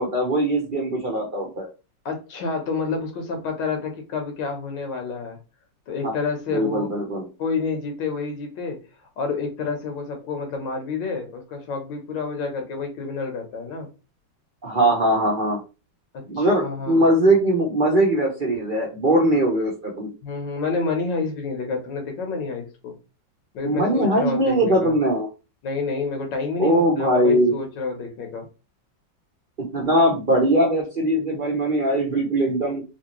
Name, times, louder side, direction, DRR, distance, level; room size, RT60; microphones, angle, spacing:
voice 1, 0.0-1.7 6.0-6.1 6.5-7.3 14.6-15.6 16.3-20.1 23.6-25.3 26.6-27.6 29.7-32.8, right 1 dB, 50° right, -2 dB, 0.6 m, -21 dB
voice 2, 2.0-5.4 5.9-6.9 7.4-8.9 9.2-13.9 16.1-17.0 20.2-22.9 23.5-24.9 25.6-28.5, left 4 dB, 80° left, 3 dB, 1.6 m, -29 dB
3.4 x 2.8 x 2.9 m, 0.30 s
omnidirectional pair, 2.0 m